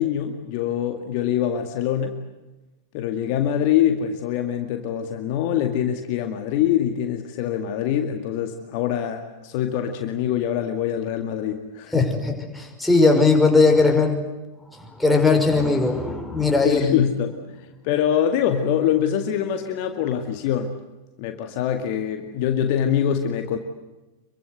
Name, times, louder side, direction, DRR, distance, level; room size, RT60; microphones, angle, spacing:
voice 1, 0.0-2.2 2.9-12.1 16.6-17.4 17.8-20.7 21.2-23.6, left 9 dB, 45° left, 6 dB, 2.1 m, -24 dB
voice 2, 11.9-14.2 14.7-17.0, left 3 dB, 5° left, 2 dB, 5.7 m, -19 dB
26.5 x 23.5 x 8.1 m, 1.1 s
figure-of-eight pair, 90°, 0 cm